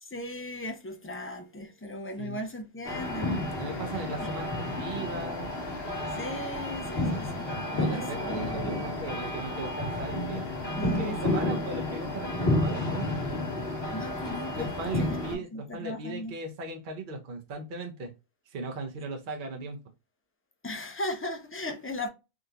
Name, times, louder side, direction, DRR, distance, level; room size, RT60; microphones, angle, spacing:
voice 1, 0.0-3.5 6.2-8.9 10.8-11.5 13.9-14.7 15.0-15.2 15.5-16.3 20.6-22.1, left 1 dB, 25° left, 0.3 m, -37 dB
sound 1, 2.8-15.3, left 1 dB, 70° left, 1.6 m, -31 dB
voice 2, 3.6-4.5 4.8-5.5 7.8-10.5 10.8-13.2 14.5-18.1 18.5-19.8, right 2 dB, 55° right, 0.8 m, -37 dB
3.7 x 2.5 x 2.7 m
omnidirectional pair, 1.1 m